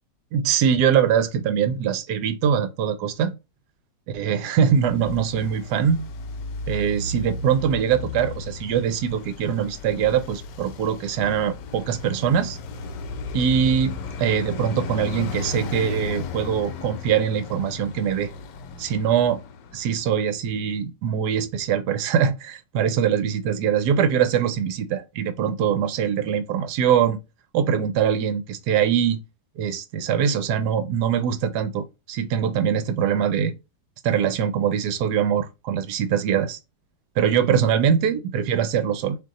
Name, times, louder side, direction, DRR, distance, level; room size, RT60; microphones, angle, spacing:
voice 1, 0.3-3.3 4.1-6.0 6.7-12.6 13.3-18.3 18.8-19.4 19.7-27.2 27.5-29.2 29.6-33.5 34.0-36.6 37.2-39.2, right 8 dB, 70° right, 1.1 m, -23 dB
Traffic noise roadway noise, 4.7-20.2, left 3 dB, 75° left, 1.2 m, -35 dB
3.7 x 3.0 x 4.0 m
omnidirectional pair, 2.0 m